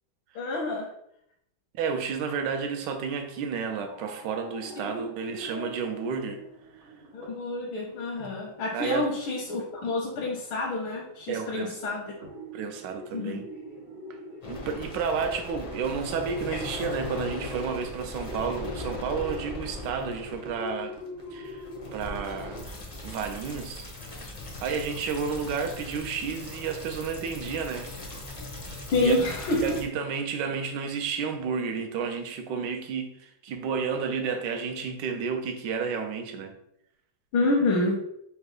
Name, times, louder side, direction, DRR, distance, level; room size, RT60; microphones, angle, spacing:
voice 1, 0.4-0.9 4.8-5.0 7.1-12.1 13.1-13.5 28.9-29.7 37.3-38.0, left 2 dB, 85° left, -2 dB, 1.6 m, -28 dB
voice 2, 1.7-6.4 8.2-8.3 8.7-9.1 11.3-11.9 12.5-13.4 14.5-20.9 21.3-21.7 21.9-22.7 23.0-23.9 24.1-24.3 24.6-27.9 28.7-29.2 29.6-36.5, right 6 dB, 70° right, 6 dB, 1.2 m, -31 dB
sound 1, 3.8-22.6, equal, 85° right, 2.2 m, -45 dB
sound 2, 14.4-29.8, left 2 dB, 55° left, 0.3 m, -39 dB
5.0 x 2.2 x 4.8 m, 0.75 s
omnidirectional pair, 2.2 m